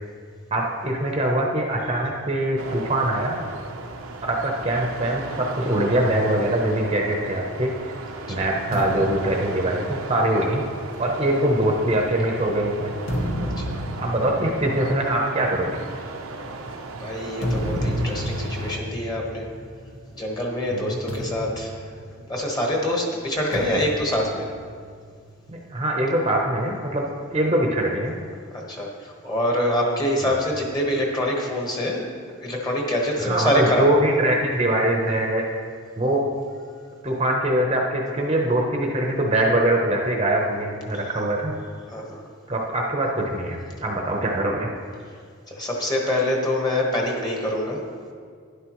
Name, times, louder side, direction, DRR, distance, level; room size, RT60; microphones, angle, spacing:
voice 1, 0.5-3.4 4.2-7.7 8.3-10.6 11.0-13.0 14.0-15.8 20.7-21.0 25.5-27.0 27.3-28.2 30.2-30.3 33.2-35.4 36.0-36.2 37.0-41.6 42.5-44.7, right 1 dB, 25° right, 0 dB, 0.8 m, -23 dB
sound 1, 2.6-18.8, right 3 dB, 80° right, 0.8 m, -36 dB
sound 2, 8.7-12.3 12.8-20.3 20.5-20.7 21.1-22.7 23.5-25.3, equal, 75° left, 1.7 m, -32 dB
voice 2, 13.4-13.8 17.0-19.5 20.1-21.8 22.2-24.5 28.7-32.1 32.4-33.9 40.9-41.2 41.9-42.2 45.5-47.8, left 1 dB, 20° left, -1 dB, 1.3 m, -25 dB
11.5 x 10.5 x 3.1 m, 2.1 s
head